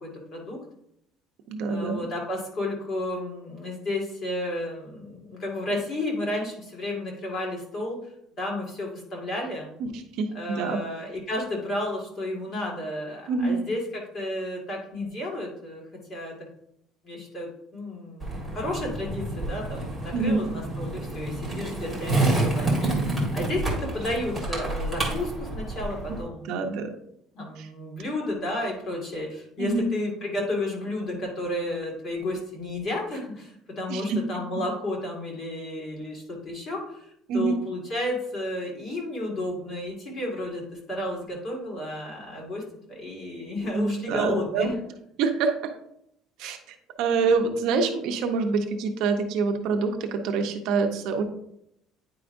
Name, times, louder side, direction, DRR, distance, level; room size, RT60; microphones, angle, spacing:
voice 1, 0.0-0.6 1.7-8.0 8.4-9.7 10.3-15.8 16.1-16.3 17.0-26.5 27.3-42.6 42.9-44.8, left 1 dB, 30° left, -1 dB, 1.8 m, -32 dB
voice 2, 1.5-2.0 9.8-9.9 10.2-10.8 13.3-13.6 20.1-20.5 26.1-26.2 26.4-26.9 27.6-27.7 29.6-29.9 33.9-34.2 37.3-37.6 43.6-44.7 45.2-45.7 46.4-46.6 47.0-51.2, right 4 dB, 60° right, 4 dB, 0.7 m, -26 dB
Skateboard, 18.2-26.2, right 2 dB, 5° left, 1.5 m, -28 dB
9.3 x 4.8 x 2.6 m, 0.75 s
cardioid pair, 175°, 0 cm